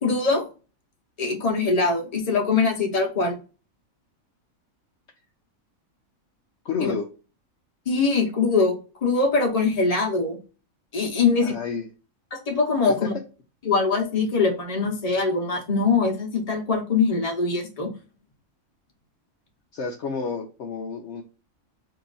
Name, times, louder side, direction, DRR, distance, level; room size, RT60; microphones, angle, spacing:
voice 1, 0.0-0.5 1.2-3.4 6.8-6.9 7.9-8.7 9.0-10.4 10.9-11.6 12.3-13.1 13.6-17.9, left 4 dB, 30° left, 1 dB, 0.9 m, -22 dB
voice 2, 6.6-7.1 11.4-11.9 13.0-13.1 19.7-21.2, left 5 dB, 65° left, 2 dB, 0.8 m, -30 dB
3.7 x 2.8 x 4.0 m, 0.34 s
omnidirectional pair, 1.4 m